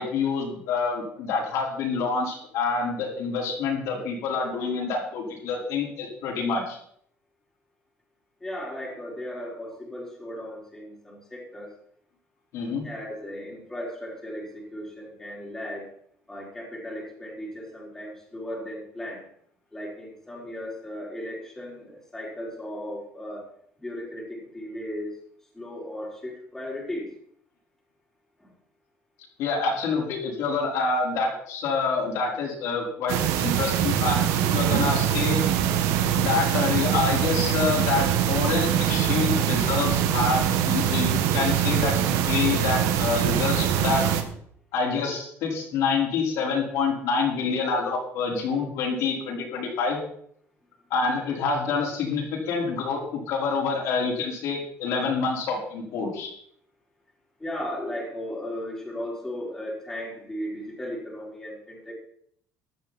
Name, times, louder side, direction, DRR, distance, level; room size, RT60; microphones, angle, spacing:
voice 1, 0.0-6.8 12.5-12.8 29.4-34.2 34.5-35.4 36.2-44.0 44.7-50.0 50.9-56.3, left 4 dB, 65° left, -3 dB, 4.9 m, -27 dB
voice 2, 8.4-11.7 12.8-15.9 16.3-19.3 19.7-23.5 23.8-25.2 25.5-27.2 28.4-28.5 57.4-61.9, left 1 dB, 5° left, -4 dB, 4.6 m, -36 dB
sound 1, 33.1-44.2, right 10 dB, 90° right, 1.7 m, -23 dB
15.0 x 11.5 x 4.5 m, 0.65 s
cardioid pair, 165°, 5 cm